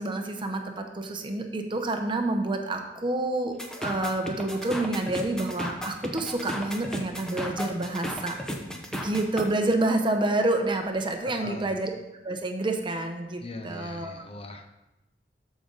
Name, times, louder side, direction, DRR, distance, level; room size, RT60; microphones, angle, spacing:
voice 1, 0.0-8.3 8.9-11.9 12.2-14.2, right 2 dB, 30° right, 5 dB, 0.9 m, -28 dB
sound 1, 3.6-9.4, equal, 5° left, 0.9 m, -34 dB
voice 2, 11.3-11.8 13.4-14.7, left 2 dB, 35° left, 7 dB, 0.6 m, -40 dB
13.5 x 5.2 x 4.0 m, 0.97 s
head